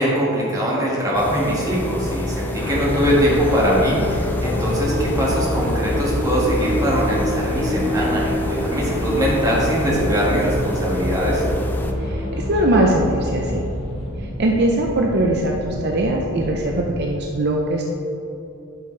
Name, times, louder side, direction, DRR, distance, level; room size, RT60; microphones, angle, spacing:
voice 1, 0.0-11.4, equal, 15° right, -6 dB, 1.7 m, -22 dB
sound 1, 1.1-11.9, left 1 dB, 10° left, 0.4 m, -28 dB
sound 2, 2.5-17.1, equal, 30° left, 1.1 m, -32 dB
Musical instrument, 2.6-14.2, left 1 dB, 70° left, 1.8 m, -27 dB
voice 2, 12.0-13.6 14.4-17.8, right 1 dB, 50° right, 0 dB, 0.6 m, -21 dB
11.0 x 5.1 x 3.3 m, 2.9 s
head